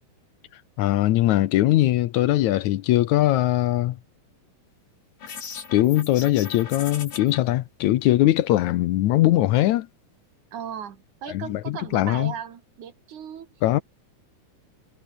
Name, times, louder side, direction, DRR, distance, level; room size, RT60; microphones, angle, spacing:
voice 1, 0.8-4.0 5.7-9.9 11.3-12.3 13.6-13.8, left 15 dB, 75° left, 2.1 m, -21 dB
sound 1, 5.2-7.4, left 6 dB, 55° left, 4.3 m, -38 dB
voice 2, 10.5-13.5, right 8 dB, 70° right, 3.6 m, -37 dB
omnidirectional pair, 3.6 m